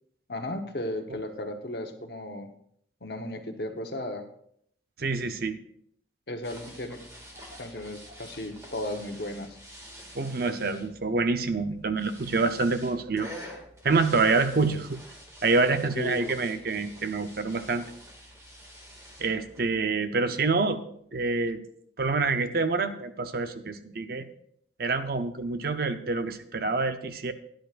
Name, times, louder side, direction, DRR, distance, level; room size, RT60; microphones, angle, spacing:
voice 1, 0.3-2.5 3.0-4.3 6.3-7.0 7.6-9.6 15.9-16.4, left 1 dB, 60° left, 5 dB, 1.1 m, -35 dB
voice 2, 5.0-5.6 10.1-13.3 13.8-15.0 15.4-17.8 19.2-20.8 21.1-21.6 22.0-24.3 24.8-27.3, right 3 dB, 50° right, 9 dB, 0.7 m, -27 dB
sound 1, 6.4-19.8, equal, 15° right, 2.1 m, -48 dB
16.5 x 10.5 x 2.5 m, 0.68 s
head